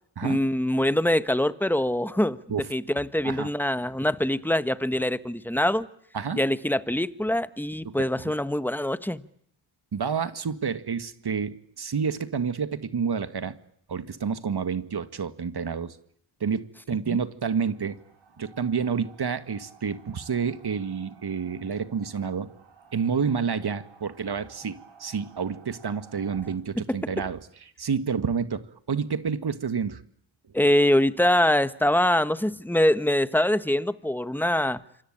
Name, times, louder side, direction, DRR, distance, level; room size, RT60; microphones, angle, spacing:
voice 1, 0.2-2.4 2.7-5.9 6.3-9.3 17.1-17.2 26.9-27.0 30.5-34.8, left 1 dB, 5° left, 13 dB, 1.4 m, -24 dB
voice 2, 9.9-13.6 13.9-16.0 16.4-18.0 18.4-22.5 22.9-27.4 27.8-30.0, right 6 dB, 55° right, 11 dB, 1.9 m, -29 dB
sound 1, 17.5-26.6, right 6 dB, 75° right, 6.4 m, -54 dB
26.5 x 22.0 x 8.9 m, 0.69 s
cardioid pair, 60°, 46 cm